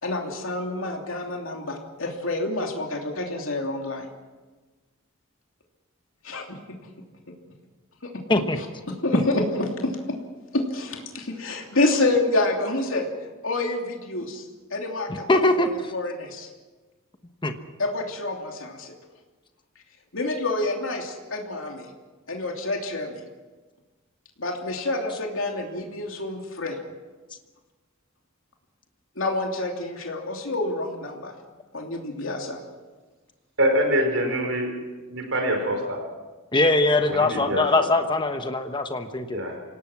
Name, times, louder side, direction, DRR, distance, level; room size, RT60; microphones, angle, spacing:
voice 1, 0.0-4.1 6.2-6.6 8.0-8.1 8.9-10.2 10.5-13.1 13.4-14.4 14.7-16.5 17.8-18.9 20.1-21.9 22.3-23.2 24.4-26.8 29.2-31.3 31.7-32.6, left 2 dB, 70° left, 2 dB, 3.0 m, -28 dB
voice 2, 15.3-15.9 17.4-17.5 36.5-39.4, left 2 dB, 20° left, 7 dB, 1.2 m, -22 dB
voice 3, 33.6-34.7 35.1-36.0 37.1-37.9 39.3-39.6, equal, 65° right, 4 dB, 4.9 m, -24 dB
26.5 x 18.0 x 6.1 m, 1.3 s
head